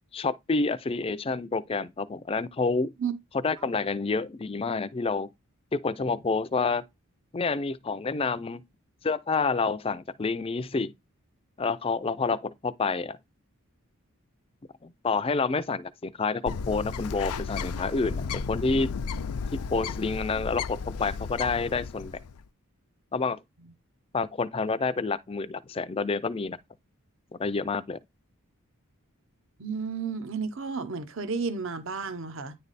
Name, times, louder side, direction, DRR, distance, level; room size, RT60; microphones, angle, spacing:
voice 1, 0.1-2.9 3.3-5.3 5.7-6.8 7.3-8.6 9.0-10.9 11.6-13.2 14.8-18.9 19.7-22.1 23.1-23.4 24.1-26.6 27.4-28.0, left 4 dB, 25° left, 0.4 m, -28 dB
Bird, 16.5-22.4, left 5 dB, 90° left, 0.5 m, -34 dB
voice 2, 29.6-32.6, right 5 dB, 60° right, 0.8 m, -32 dB
9.7 x 3.3 x 4.1 m
head